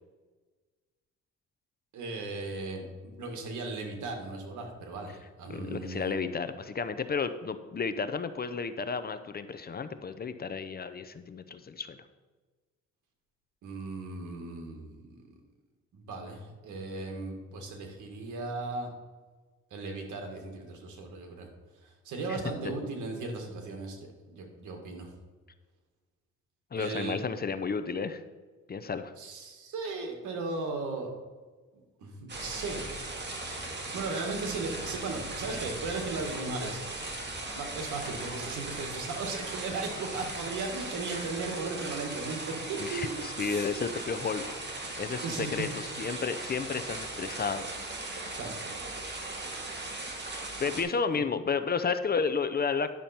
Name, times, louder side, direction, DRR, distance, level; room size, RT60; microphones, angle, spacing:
voice 1, 1.9-6.2 13.6-15.2 15.9-18.9 19.7-21.5 21.8-25.1 26.8-27.2 29.2-31.1 32.0-32.9 33.9-36.8 37.5-43.7 45.2-45.7 48.3-48.5, right 3 dB, 80° right, 3 dB, 2.1 m, -37 dB
voice 2, 5.5-12.0 22.3-22.4 26.7-28.2 28.7-29.1 42.8-44.4 45.0-47.7 50.6-52.9, left 5 dB, 30° left, 11 dB, 0.6 m, -32 dB
sound 1, 32.3-50.8, right 2 dB, 35° right, 2.0 m, -38 dB
11.0 x 6.9 x 4.4 m, 1.3 s
cardioid pair, 90°, 30 cm